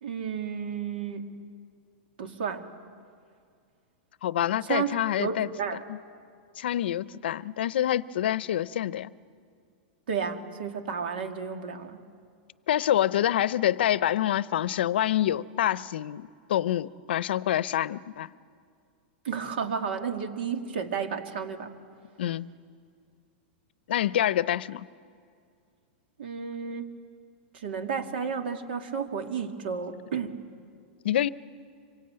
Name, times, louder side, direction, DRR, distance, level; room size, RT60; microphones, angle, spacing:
voice 1, 0.0-1.3 2.2-2.6 4.6-5.9 10.1-12.0 19.2-21.8 26.2-26.9 27.5-30.4, right 6 dB, 70° right, 2.2 m, -32 dB
voice 2, 4.2-5.5 5.9-6.0 6.6-9.1 12.7-18.3 22.2-22.5 23.9-24.8 31.0-31.3, left 12 dB, 80° left, 0.6 m, -26 dB
25.5 x 23.5 x 8.8 m
supercardioid pair, 175°, 6 cm